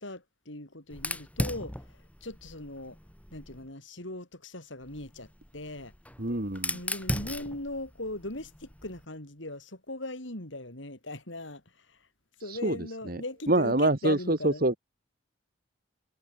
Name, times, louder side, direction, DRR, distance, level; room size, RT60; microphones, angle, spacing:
voice 1, 0.0-3.0 3.3-5.9 6.7-12.1 12.4-14.8, left 1 dB, 65° left, 5.0 m, -39 dB
Fire, 0.9-3.7 4.8-9.0, left 1 dB, 5° left, 3.7 m, -37 dB
voice 2, 6.2-6.8 12.6-12.8 13.1-13.2 13.5-14.7, right 2 dB, 45° right, 2.3 m, -25 dB
head